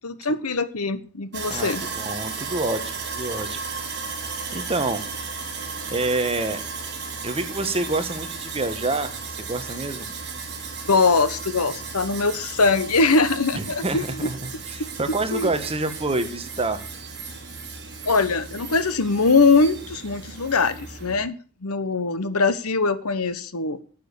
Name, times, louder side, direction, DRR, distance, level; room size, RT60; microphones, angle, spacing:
voice 1, 0.0-1.8 10.9-14.3 15.3-15.5 18.1-21.3 21.6-23.8, left 4 dB, 75° left, 14 dB, 1.1 m, -22 dB
Sawing, 1.3-21.2, right 4 dB, 50° right, 3.0 m, -35 dB
voice 2, 1.5-3.6 4.1-5.0 5.9-6.6 7.2-10.1 13.5-16.8, right 2 dB, 25° right, 9 dB, 1.3 m, -27 dB
9.5 x 7.2 x 8.1 m, 0.40 s
head